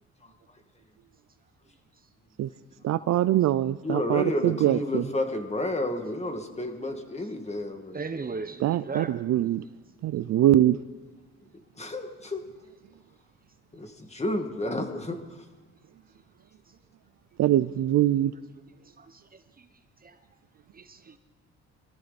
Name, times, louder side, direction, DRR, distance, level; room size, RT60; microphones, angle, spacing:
voice 1, 2.8-5.0 8.6-9.6 10.0-10.8 17.4-18.3, right 13 dB, 65° right, 16 dB, 0.5 m, -23 dB
voice 2, 3.8-8.0 11.8-12.4 13.7-15.2, left 1 dB, 20° left, 5 dB, 2.1 m, -31 dB
voice 3, 7.9-9.1 19.0-19.6 20.0-20.2 20.7-21.2, right 4 dB, 30° right, 9 dB, 1.0 m, -37 dB
23.5 x 14.5 x 4.2 m, 1.3 s
cardioid pair, 90°, 30 cm